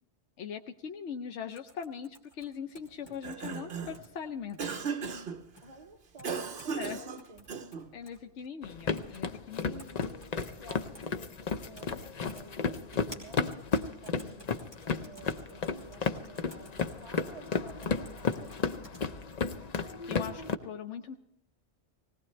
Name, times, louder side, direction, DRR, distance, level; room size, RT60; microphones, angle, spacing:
voice 1, 0.4-4.8 6.7-7.0 7.9-9.8 19.8-21.2, left 7 dB, 80° left, 5 dB, 1.0 m, -41 dB
sound 1, 1.6-4.1 4.5-5.2 5.6-5.7 6.2-6.9 7.2-8.2 9.0-9.3 9.5-11.1 11.8-12.0 12.3-19.0, equal, 20° left, 2.9 m, -53 dB
Cough, 3.0-4.1 4.6-5.4 6.2-7.9, right 5 dB, 60° right, 1.1 m, -36 dB
voice 2, 5.6-7.5 9.6-14.6 15.0-18.8, right 2 dB, 35° right, 1 dB, 1.1 m, -52 dB
sound 2, 8.6-20.5, left 5 dB, 45° left, 0.7 m, -33 dB
20.0 x 18.0 x 3.2 m, 0.76 s
omnidirectional pair, 1.2 m